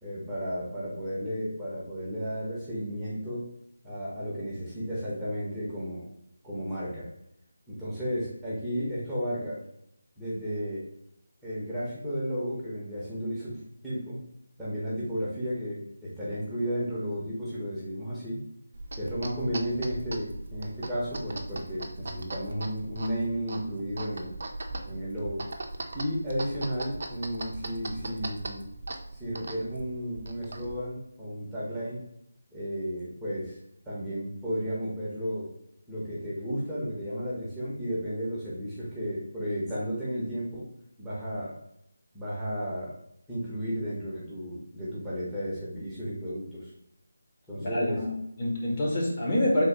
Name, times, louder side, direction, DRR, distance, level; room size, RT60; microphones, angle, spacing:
voice 1, 0.0-3.5 3.8-6.1 6.4-7.1 7.7-9.6 10.2-10.8 11.4-14.2 14.6-18.4 18.9-24.3 24.9-25.4 25.9-28.7 29.1-32.0 32.5-33.6 33.8-35.5 35.9-40.7 41.0-41.6 42.1-42.9 43.3-46.7 47.5-48.0, equal, 5° right, -10 dB, 1.1 m, -33 dB
sound 1, 18.7-30.9, right 2 dB, 55° right, 0.6 m, -39 dB
voice 2, 47.6-49.6, left 1 dB, 30° left, -4 dB, 1.3 m, -27 dB
3.5 x 3.0 x 4.2 m, 0.78 s
figure-of-eight pair, 160°, 0 cm